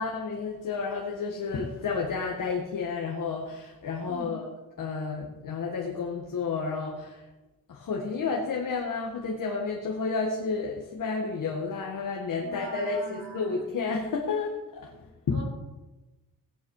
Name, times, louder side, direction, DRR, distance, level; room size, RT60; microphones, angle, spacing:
voice 1, 0.0-4.5 4.8-7.3 7.7-15.4, left 4 dB, 65° left, 0 dB, 2.0 m, -31 dB
voice 2, 4.0-4.4 12.4-13.6 15.3-15.4, right 2 dB, 50° right, -2 dB, 5.7 m, -42 dB
17.5 x 10.5 x 4.9 m, 1.1 s
wide cardioid pair, 130°, 35 cm